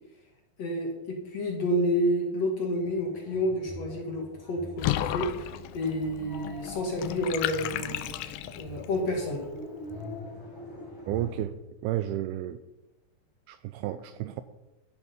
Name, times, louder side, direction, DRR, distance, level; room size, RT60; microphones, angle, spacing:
voice 1, 0.6-9.4, equal, 50° left, 1 dB, 2.2 m, -30 dB
sound 1, 2.8-11.5, left 1 dB, 5° left, 2.9 m, -43 dB
Water / Bathtub (filling or washing), 4.8-8.9, left 13 dB, 85° left, 2.8 m, -33 dB
voice 2, 11.1-11.6 11.8-12.6 13.5-14.4, right 13 dB, 85° right, 12 dB, 2.3 m, -32 dB
13.0 x 11.0 x 5.2 m, 0.97 s
omnidirectional pair, 4.9 m